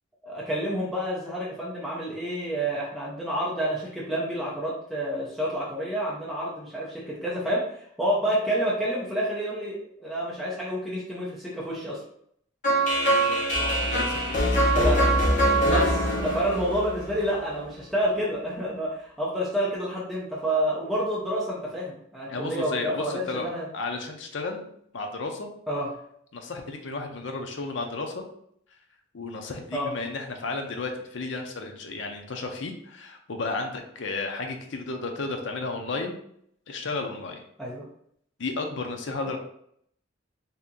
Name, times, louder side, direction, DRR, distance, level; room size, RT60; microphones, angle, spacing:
voice 1, 0.2-12.0 14.7-15.0 15.6-23.7 25.7-25.9 29.7-29.9 37.6-37.8 39.3-39.4, equal, ahead, -7 dB, 0.6 m, -29 dB
sound 1, 12.6-17.6, right 1 dB, 40° left, 0.8 m, -23 dB
voice 2, 13.1-15.7 22.3-24.7 24.9-25.5 26.3-28.3 29.1-36.2 36.7-37.4 38.4-39.4, left 3 dB, 65° left, 4 dB, 0.5 m, -33 dB
2.8 x 2.5 x 3.7 m, 0.68 s
head